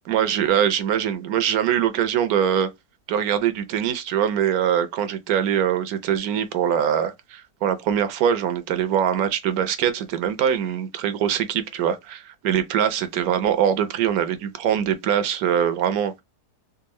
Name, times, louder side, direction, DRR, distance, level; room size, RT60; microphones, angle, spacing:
voice 1, 0.1-2.7 3.1-16.2, right 9 dB, 70° right, 1.0 m, -23 dB
3.6 x 2.3 x 2.9 m
omnidirectional pair, 1.7 m